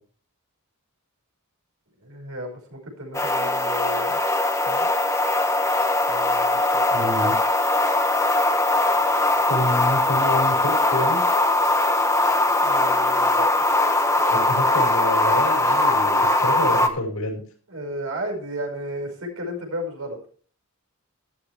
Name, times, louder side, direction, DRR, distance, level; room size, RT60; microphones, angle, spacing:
voice 1, 2.0-4.2 4.6-4.9 6.1-7.0 12.6-13.5 17.7-20.2, equal, 75° right, 2 dB, 5.4 m, -33 dB
sound 1, 3.1-16.9, left 2 dB, 15° left, 1.1 m, -20 dB
voice 2, 6.9-7.3 9.5-11.2 14.3-17.4, left 1 dB, 90° left, 1 dB, 5.3 m, -28 dB
13.5 x 12.5 x 3.4 m, 0.42 s
head